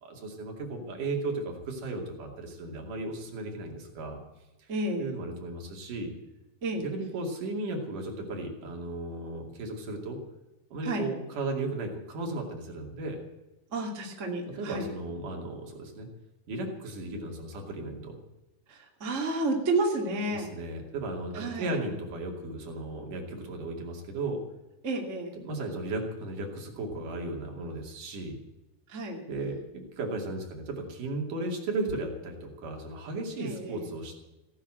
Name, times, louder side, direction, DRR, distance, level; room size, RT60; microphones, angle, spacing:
voice 1, 0.0-4.2 5.0-6.1 6.8-10.2 10.7-13.2 14.6-16.1 16.5-18.2 20.3-24.4 25.4-28.4 29.3-34.1, right 2 dB, 50° right, 1 dB, 3.7 m, -35 dB
voice 2, 4.7-5.1 6.6-6.9 10.8-11.1 13.7-14.9 18.7-20.5 21.3-21.8 24.8-25.4 28.9-29.2 33.4-33.9, right 2 dB, 25° right, 0 dB, 1.8 m, -31 dB
17.0 x 10.0 x 7.8 m, 1.0 s
omnidirectional pair, 5.1 m